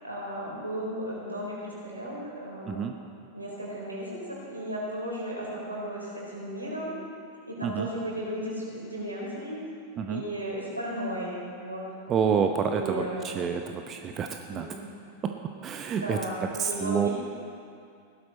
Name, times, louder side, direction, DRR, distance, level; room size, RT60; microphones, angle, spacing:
voice 1, 0.0-3.0 3.3-6.9 7.5-9.6 10.1-11.8 12.6-13.4 14.5-14.8 16.0-17.1, equal, 85° right, -4 dB, 4.0 m, -35 dB
voice 2, 12.1-14.7 15.6-16.2 16.6-17.1, right 7 dB, 30° right, 5 dB, 0.7 m, -28 dB
16.5 x 12.0 x 4.2 m, 2.4 s
figure-of-eight pair, 90°, 0 cm